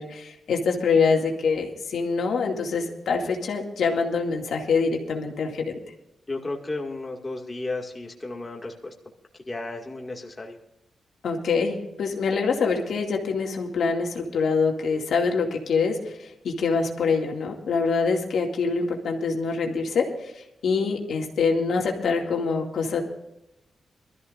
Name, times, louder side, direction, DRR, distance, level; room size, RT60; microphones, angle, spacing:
voice 1, 0.0-5.6 11.2-23.0, left 5 dB, 80° left, 1 dB, 2.3 m, -25 dB
voice 2, 6.3-8.9 9.5-10.6, left 2 dB, 25° left, 1 dB, 2.1 m, -33 dB
23.0 x 13.5 x 2.6 m, 0.88 s
cardioid pair, 90°, 0 cm